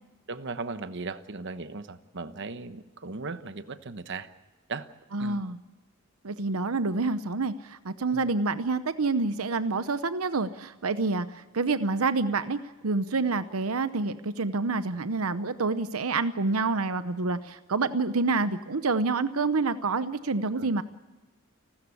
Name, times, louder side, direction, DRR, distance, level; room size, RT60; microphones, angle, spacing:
voice 1, 0.3-4.3 4.7-4.9 5.2-5.4 8.1-8.3 20.6-20.7, right 3 dB, 55° right, 11 dB, 1.1 m, -37 dB
voice 2, 5.1-5.6 6.2-12.6 12.8-20.8, right 3 dB, 90° right, 12 dB, 0.9 m, -27 dB
30.0 x 13.5 x 8.5 m, 1.2 s
head